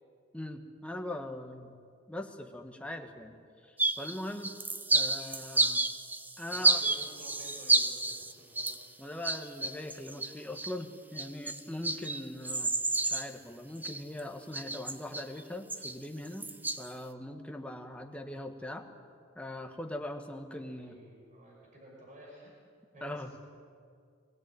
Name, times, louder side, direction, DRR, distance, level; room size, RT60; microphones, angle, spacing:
voice 1, 0.3-1.7 2.1-4.5 4.9-5.9 6.4-6.8 9.0-12.7 13.0-16.5 16.8-18.8 19.3-20.9 23.0-23.3, left 1 dB, 5° left, 4 dB, 1.5 m, -41 dB
sound 1, 3.8-4.2 4.4-8.9 9.2-10.7 11.2-13.3 13.8-14.2 14.5-15.4 15.7-16.9, right 2 dB, 10° right, 0.7 m, -30 dB
voice 2, 6.5-8.8 11.8-12.0 20.5-22.5 22.9-23.4, equal, 40° right, -3 dB, 5.7 m, -53 dB
21.5 x 17.0 x 9.2 m, 2.2 s
head